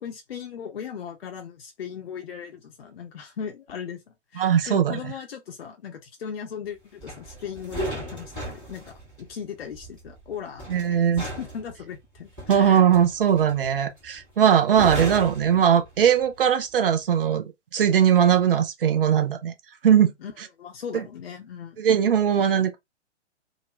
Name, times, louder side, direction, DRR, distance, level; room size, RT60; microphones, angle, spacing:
voice 1, 0.0-12.8 20.2-20.3 20.6-21.8, left 7 dB, 55° left, 0.6 m, -38 dB
voice 2, 4.4-5.1 10.7-11.2 12.5-19.5 19.8-20.1 20.9-21.0 21.8-22.8, right 8 dB, 50° right, 0.6 m, -20 dB
sound 1, 7.0-16.3 16.6-16.9, right 1 dB, ahead, 0.3 m, -37 dB
2.4 x 2.0 x 3.0 m
figure-of-eight pair, 115°, 36 cm